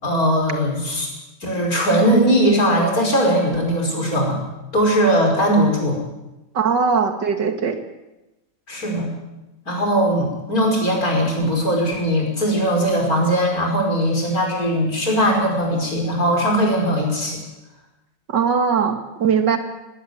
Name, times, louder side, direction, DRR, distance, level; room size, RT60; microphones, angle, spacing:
voice 1, 0.0-1.1 1.4-4.4 4.7-6.0 8.7-9.1 9.7-17.4, equal, 55° left, 0 dB, 6.0 m, -19 dB
voice 2, 6.5-7.8 18.3-19.6, right 6 dB, 90° right, 6 dB, 2.6 m, -20 dB
20.5 x 17.0 x 8.1 m, 1.0 s
omnidirectional pair, 1.8 m